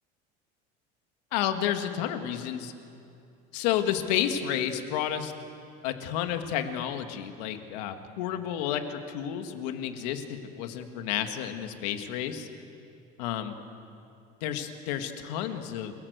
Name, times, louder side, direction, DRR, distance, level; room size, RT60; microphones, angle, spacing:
voice 1, 1.3-2.7 3.5-5.3 5.8-10.2 10.6-12.5 13.2-13.5 14.4-15.9, left 10 dB, 85° left, 7 dB, 1.9 m, -31 dB
28.5 x 17.5 x 8.1 m, 2.6 s
cardioid pair, 160°, 21 cm